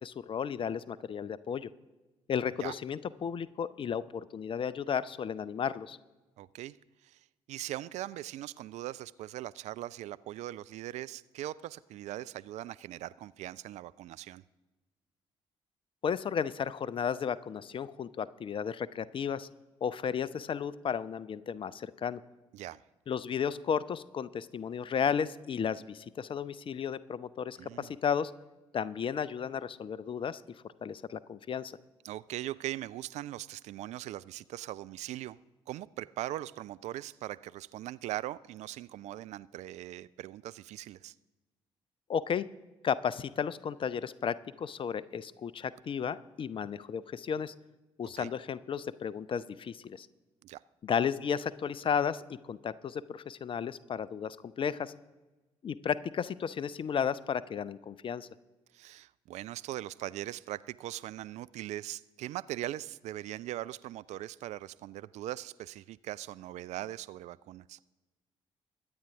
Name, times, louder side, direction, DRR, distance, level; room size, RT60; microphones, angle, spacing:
voice 1, 0.0-1.7 2.3-6.0 16.0-19.5 19.8-22.2 23.1-28.3 28.7-30.4 30.8-31.8 42.1-42.5 42.8-47.5 48.0-50.1 50.8-54.9 55.6-58.3, left 7 dB, 35° left, 19 dB, 0.6 m, -33 dB
voice 2, 6.4-6.8 7.0-7.2 7.5-14.4 22.5-22.8 27.6-27.9 32.0-35.4 35.7-41.1 48.2-48.3 50.4-50.6 58.7-67.8, right 14 dB, 50° right, 17 dB, 0.4 m, -40 dB
23.0 x 8.8 x 3.6 m, 1.1 s
figure-of-eight pair, 45°, 14 cm